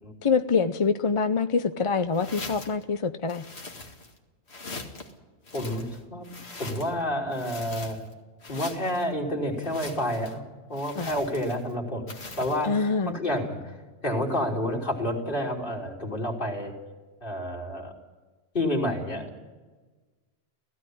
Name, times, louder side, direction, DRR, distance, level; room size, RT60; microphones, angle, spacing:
voice 1, 0.2-3.4 11.0-11.1 12.6-13.2, left 5 dB, 35° left, 10 dB, 0.6 m, -25 dB
sound 1, 2.1-2.8 3.3-4.2 4.5-5.1 5.4-7.0 7.3-8.1 8.4-9.1 9.6-10.4 10.7-11.7 12.1-12.7, left 3 dB, 75° left, 2.3 m, -41 dB
voice 2, 5.5-6.3 6.6-8.0 8.5-10.4 10.7-13.8 14.0-16.7 17.2-17.9 18.5-19.4, left 1 dB, 55° left, -1 dB, 3.6 m, -29 dB
16.0 x 16.0 x 9.9 m, 1.3 s
omnidirectional pair, 1.1 m